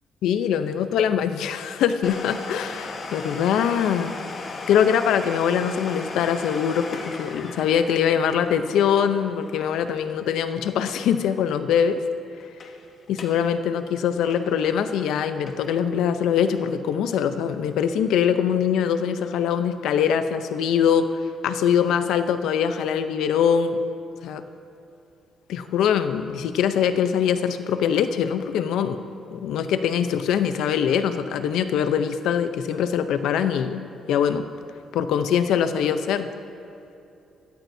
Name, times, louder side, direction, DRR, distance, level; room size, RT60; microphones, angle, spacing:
voice 1, 0.2-4.1 4.7-12.0 13.1-21.1 21.4-23.8 24.2-24.4 25.5-29.0 29.3-34.4 34.9-36.3, left 8 dB, 85° left, 10 dB, 0.6 m, -23 dB
Domestic sounds home sounds, 2.0-11.5 11.7-11.8 12.4-12.8 13.1-13.4 13.8-15.8 16.3-16.4 17.1-17.2, left 3 dB, 50° left, 1.3 m, -38 dB
18.0 x 13.5 x 2.7 m, 2.8 s
cardioid pair, 90°, 0 cm